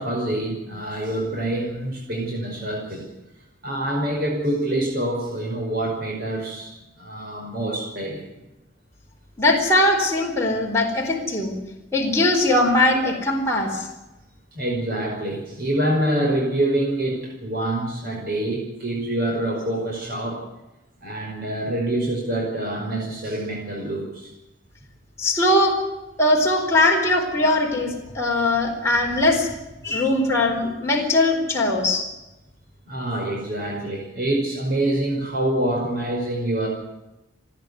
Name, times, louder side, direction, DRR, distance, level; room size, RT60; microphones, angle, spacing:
voice 1, 0.0-3.1 3.6-8.2 14.5-20.4 21.0-24.3 32.9-36.7, right 1 dB, 50° right, -1 dB, 5.5 m, -26 dB
voice 2, 9.4-11.5 11.9-13.9 25.2-25.7 26.2-29.5 29.8-32.0, left 1 dB, 15° left, -2 dB, 4.2 m, -20 dB
29.0 x 10.5 x 9.7 m, 0.99 s
head